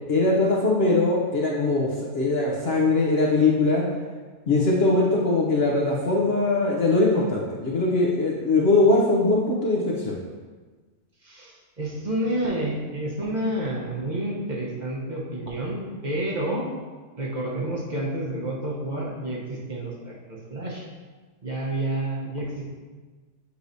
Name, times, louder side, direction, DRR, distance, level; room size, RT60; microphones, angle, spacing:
voice 1, 0.1-3.8 4.5-10.2, left 2 dB, 50° left, -3 dB, 0.8 m, -21 dB
voice 2, 11.2-16.7 17.2-20.9 21.4-22.6, right 1 dB, 35° right, -3 dB, 0.9 m, -29 dB
8.1 x 4.7 x 2.7 m, 1.4 s
omnidirectional pair, 1.7 m